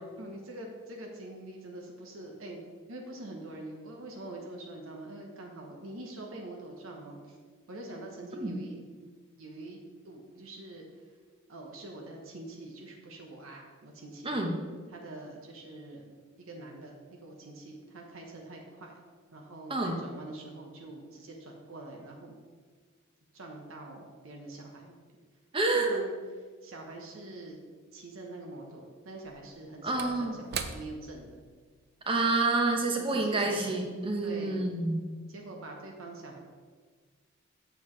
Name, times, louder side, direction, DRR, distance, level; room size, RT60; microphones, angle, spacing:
voice 1, 0.2-2.6 2.9-7.4 7.7-8.8 9.4-9.8 10.0-10.8 11.5-14.3 14.9-16.1 16.5-19.0 19.3-22.4 23.3-25.0 25.7-26.1 26.6-27.6 27.9-31.3 33.0-33.8 34.2-34.6 35.3-36.4, right 2 dB, 80° right, 0 dB, 1.0 m, -45 dB
voice 2, 14.2-14.6 19.7-19.9 25.5-26.0 29.8-30.4 32.1-35.0, right 2 dB, 25° right, 2 dB, 0.9 m, -28 dB
Slam / Wood, 27.5-27.6 29.1-33.8 34.1-34.3, right 6 dB, 50° right, 0.5 m, -43 dB
7.8 x 6.9 x 3.2 m, 1.5 s
head